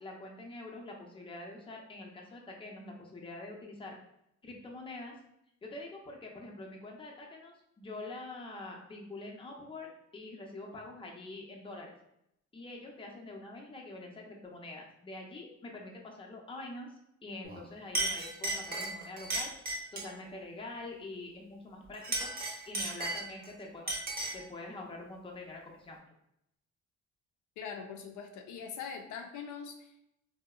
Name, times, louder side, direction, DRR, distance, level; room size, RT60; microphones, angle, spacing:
voice 1, 0.0-4.0 4.4-5.2 5.6-11.9 12.5-16.9 17.2-19.5 19.9-22.3 22.7-23.9 24.3-26.0, left 2 dB, 15° left, -1 dB, 0.6 m, -45 dB
Chink clink, 17.4-17.6 17.9-20.2 21.9-23.5 23.9-24.5, right 2 dB, 30° right, 0.6 m, -35 dB
voice 2, 27.6-30.0, left 6 dB, 80° left, 3 dB, 0.5 m, -42 dB
2.7 x 2.0 x 2.3 m, 0.79 s
cardioid pair, 90°, 30 cm